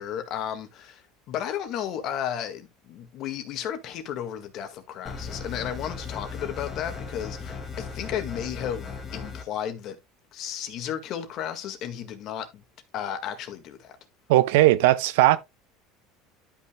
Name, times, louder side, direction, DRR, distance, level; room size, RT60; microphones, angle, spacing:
voice 1, 0.0-10.0 10.3-12.6 12.9-14.0, left 9 dB, 50° left, 1.8 m, -33 dB
sound 1, 5.1-9.4, left 4 dB, 25° left, 1.8 m, -37 dB
voice 2, 14.3-15.4, right 16 dB, 80° right, 0.7 m, -18 dB
12.0 x 6.0 x 2.3 m
supercardioid pair, 120°, 0 cm